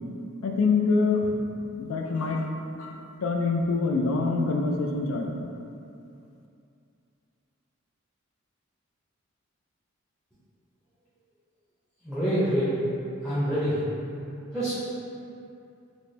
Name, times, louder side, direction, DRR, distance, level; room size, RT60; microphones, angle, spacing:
voice 1, 0.4-1.3 1.7-2.5 2.8-5.3, left 4 dB, 75° left, 2 dB, 0.4 m, -25 dB
voice 2, 12.0-12.7 13.2-13.8 14.5-14.8, equal, 5° left, -13 dB, 0.6 m, -26 dB
4.2 x 2.1 x 3.1 m, 2.6 s
head